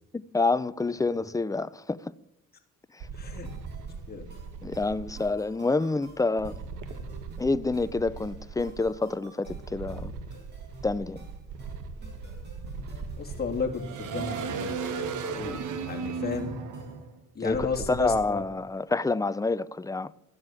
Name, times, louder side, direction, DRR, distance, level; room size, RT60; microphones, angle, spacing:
voice 1, 0.1-2.1 2.9-3.1 4.6-6.6 7.4-10.1 10.8-11.2 17.4-20.1, left 3 dB, 10° left, 0.5 m, -28 dB
sound 1, 3.0-5.3 6.4-8.9 9.5-18.2, right 5 dB, 85° right, 1.7 m, -37 dB
voice 2, 3.1-3.5 4.1-4.2 13.2-14.7 15.4-16.5 17.3-18.4, left 5 dB, 30° left, 3.0 m, -33 dB
sound 2, 3.4-17.1, right 1 dB, 35° right, 6.0 m, -51 dB
14.5 x 7.8 x 9.0 m
cardioid pair, 90°, 30 cm